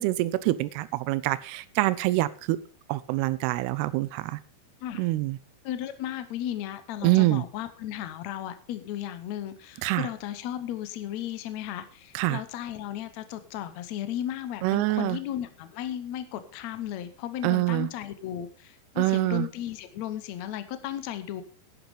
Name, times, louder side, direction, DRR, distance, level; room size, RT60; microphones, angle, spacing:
voice 1, 0.0-2.6 2.9-4.4 4.9-5.4 7.0-7.5 9.8-10.1 12.1-12.4 14.6-15.2 17.4-17.9 19.0-19.5, right 18 dB, 85° right, 16 dB, 2.7 m, -25 dB
voice 2, 5.6-21.4, left 11 dB, 85° left, 10 dB, 1.5 m, -35 dB
11.5 x 9.6 x 5.2 m, 0.39 s
omnidirectional pair, 4.7 m